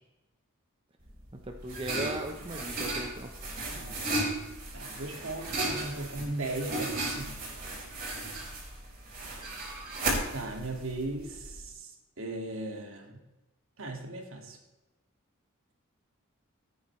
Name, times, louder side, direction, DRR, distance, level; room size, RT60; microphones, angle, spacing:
sound 1, 1.1-11.6, right 2 dB, 40° right, 4.5 m, -35 dB
voice 1, 1.4-3.6, right 1 dB, 25° right, 3 dB, 0.9 m, -38 dB
voice 2, 3.7-4.1 4.7-7.4 10.3-13.2 13.8-14.6, right 2 dB, 65° right, 3 dB, 2.2 m, -37 dB
16.0 x 9.4 x 3.3 m, 1.0 s
head